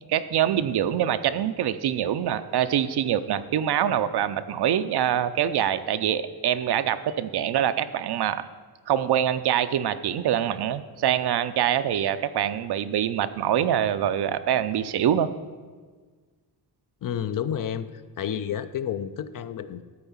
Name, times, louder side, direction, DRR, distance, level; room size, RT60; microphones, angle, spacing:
voice 1, 0.0-8.4 8.9-15.3, right 10 dB, 70° right, 12 dB, 0.6 m, -24 dB
voice 2, 17.0-17.9 18.2-19.8, left 9 dB, 55° left, 12 dB, 0.5 m, -30 dB
12.5 x 4.6 x 7.1 m, 1.5 s
wide cardioid pair, 150°, 41 cm